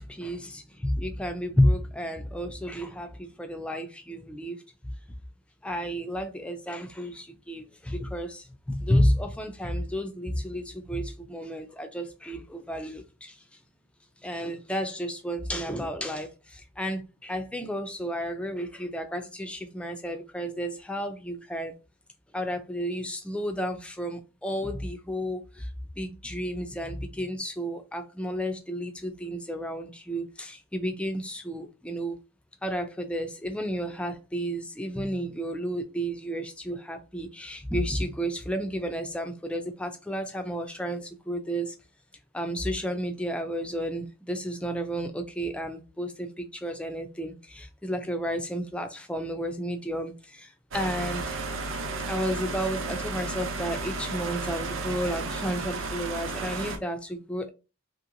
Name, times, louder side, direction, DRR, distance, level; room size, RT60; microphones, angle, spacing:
voice 1, 0.0-4.9 5.6-13.4 14.2-21.7 22.3-25.7 26.0-32.2 32.6-41.7 42.3-51.4 52.1-57.5, equal, 5° left, 0.3 m, -31 dB
sound 1, 50.7-56.8, right 3 dB, 65° right, 0.5 m, -33 dB
2.9 x 2.8 x 2.5 m
head